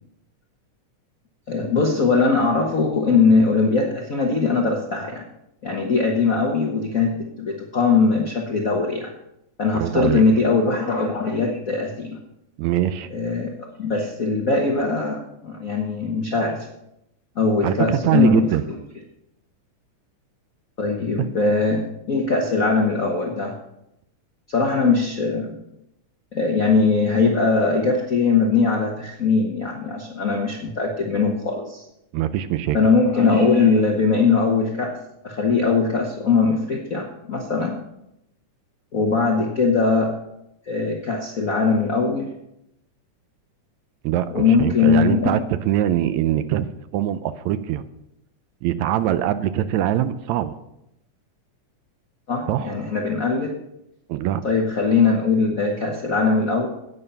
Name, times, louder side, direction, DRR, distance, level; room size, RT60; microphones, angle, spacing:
voice 1, 1.5-5.2 5.6-9.1 9.6-12.2 13.1-13.5 13.8-16.7 17.4-18.5 20.8-23.5 24.5-25.6 26.3-31.8 32.7-34.9 35.2-37.8 38.9-40.1 40.7-42.3 44.3-45.4 52.3-53.5 54.4-56.7, left 4 dB, 75° left, 0 dB, 0.7 m, -20 dB
voice 2, 9.7-10.2 12.6-13.1 17.6-18.6 21.2-21.3 32.1-32.8 44.0-45.4 45.6-46.7 46.9-47.8 48.6-50.6 52.5-52.7 54.1-54.4, right 12 dB, 80° right, 12 dB, 1.7 m, -22 dB
11.0 x 8.9 x 5.6 m, 0.82 s
omnidirectional pair, 3.6 m